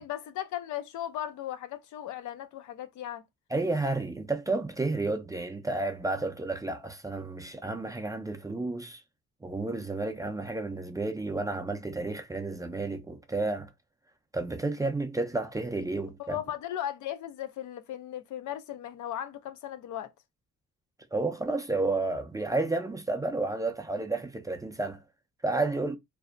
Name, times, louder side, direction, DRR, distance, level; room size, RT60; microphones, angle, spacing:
voice 1, 0.0-3.2 16.2-20.1, left 11 dB, 75° left, 0.5 m, -37 dB
voice 2, 3.5-9.0 9.4-13.7 14.3-16.4 21.1-25.0 25.4-26.0, right 2 dB, 10° right, 0.3 m, -31 dB
2.5 x 2.1 x 2.4 m
cardioid pair, 90°, 30 cm